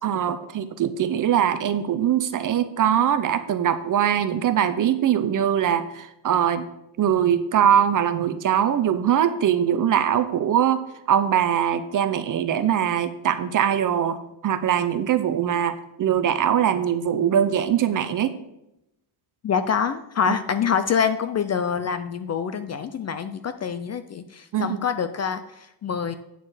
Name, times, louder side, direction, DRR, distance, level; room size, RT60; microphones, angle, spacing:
voice 1, 0.0-6.7 7.0-18.4 20.3-20.4 24.5-24.8, right 9 dB, 40° right, 11 dB, 0.6 m, -22 dB
voice 2, 19.4-25.4 25.8-26.1, left 7 dB, 35° left, 10 dB, 0.4 m, -25 dB
9.1 x 6.5 x 4.9 m, 0.86 s
cardioid pair, 175°, 47 cm